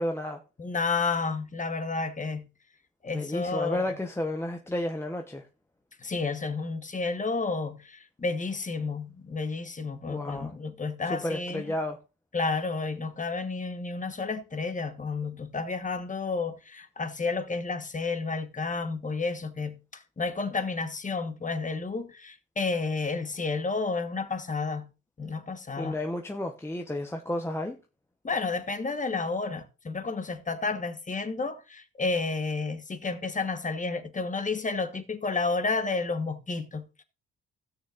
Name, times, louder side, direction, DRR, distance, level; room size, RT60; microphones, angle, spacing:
voice 1, 0.0-0.4 3.1-5.5 10.1-10.5 11.0-12.0 25.8-27.8, left 1 dB, 10° left, 0.9 m, -32 dB
voice 2, 0.6-2.5 3.0-3.8 6.0-11.6 12.3-19.8 20.2-24.9 25.2-25.9 28.2-37.0, left 4 dB, 25° left, 1.3 m, -31 dB
17.0 x 6.4 x 2.5 m
cardioid pair, 90°, 30 cm